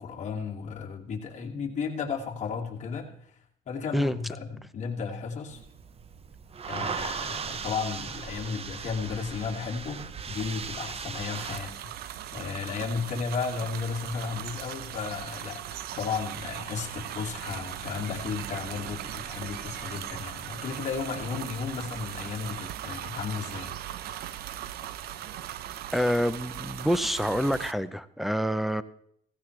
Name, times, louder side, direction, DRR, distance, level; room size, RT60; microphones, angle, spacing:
voice 1, 0.0-3.1 3.7-5.6 6.7-11.7 12.0-15.6 16.0-23.8, left 5 dB, 45° left, 2.6 m, -34 dB
sound 1, 5.5-11.6, right 6 dB, 35° right, 0.8 m, -37 dB
sound 2, 11.3-27.7, right 11 dB, 70° right, 0.7 m, -38 dB
voice 2, 25.9-28.8, equal, ahead, 0.6 m, -27 dB
16.0 x 15.5 x 3.3 m
cardioid pair, 110°, 17 cm